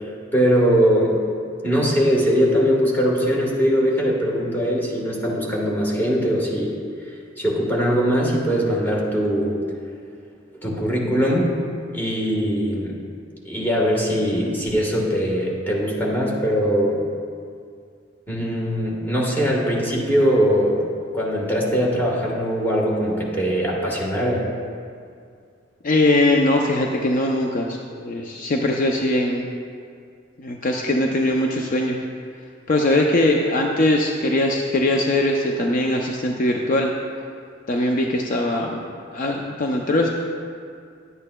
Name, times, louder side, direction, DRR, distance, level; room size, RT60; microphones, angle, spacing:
voice 1, 0.3-1.2 1.6-6.8 7.4-9.6 10.6-11.5 11.9-13.0 13.4-17.0 18.3-20.8 21.1-24.5, equal, 10° left, -3 dB, 1.3 m, -21 dB
voice 2, 25.8-29.5 30.4-32.0 32.7-36.9 37.7-40.1, left 1 dB, 45° left, 1 dB, 0.5 m, -21 dB
10.5 x 8.5 x 2.2 m, 2.3 s
head